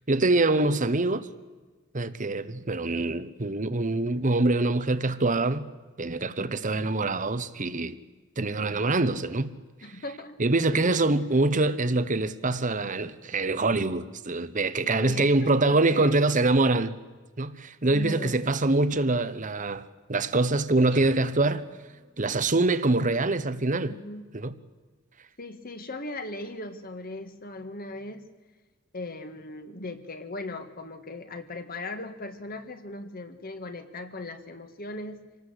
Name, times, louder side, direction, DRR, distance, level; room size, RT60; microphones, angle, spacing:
voice 1, 0.1-1.3 1.9-5.7 6.0-8.0 8.4-9.5 10.4-16.9 17.4-21.6 22.2-23.9 24.3-24.5, right 2 dB, 40° right, 1.1 m, -24 dB
voice 2, 9.8-10.4 10.7-11.0 14.8-16.1 17.9-18.4 23.9-24.3 25.4-28.3 28.9-35.2, left 2 dB, 45° left, 1.9 m, -38 dB
sound 1, 20.9-22.5, right 4 dB, 65° right, 1.9 m, -49 dB
26.0 x 19.0 x 8.2 m
head